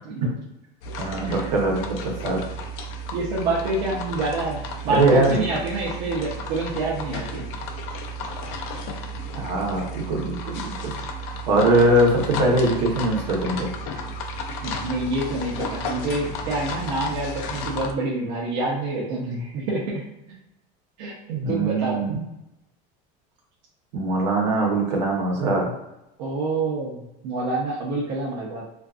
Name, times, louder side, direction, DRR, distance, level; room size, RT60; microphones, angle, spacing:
sound 1, 0.8-17.9, equal, 60° left, 0.4 m, -33 dB
voice 1, 1.0-2.4 4.9-5.4 9.3-10.9 11.5-13.7 21.3-22.2 23.9-25.7, right 2 dB, 80° right, -2 dB, 1.0 m, -22 dB
voice 2, 3.1-7.4 14.6-20.0 21.0-21.1 21.5-22.0 26.2-28.6, right 2 dB, 60° right, -5 dB, 0.7 m, -27 dB
2.5 x 2.4 x 2.4 m, 0.90 s
cardioid pair, 155°, 21 cm